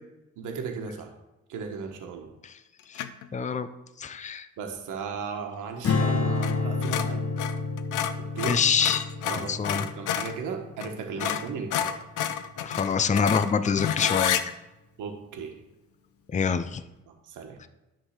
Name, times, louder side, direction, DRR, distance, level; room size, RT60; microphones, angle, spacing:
voice 1, 0.4-1.1 1.5-2.3 4.6-7.2 8.2-8.6 9.2-12.0 15.0-15.6 17.1-17.6, right 5 dB, 85° right, 3 dB, 1.3 m, -36 dB
sound 1, 3.0-3.3 6.4-6.6 6.8-10.4 10.8-10.9 11.2-14.4, left 10 dB, 80° left, 0.7 m, -30 dB
voice 2, 3.3-3.7 4.0-4.5 8.5-9.1 9.4-9.9 11.2-11.3 12.6-14.4 16.3-16.8, left 6 dB, 25° left, 10 dB, 0.6 m, -25 dB
Strum, 5.8-12.2, left 4 dB, 50° left, 1.2 m, -30 dB
10.5 x 3.7 x 6.5 m, 0.99 s
cardioid pair, 90°, 30 cm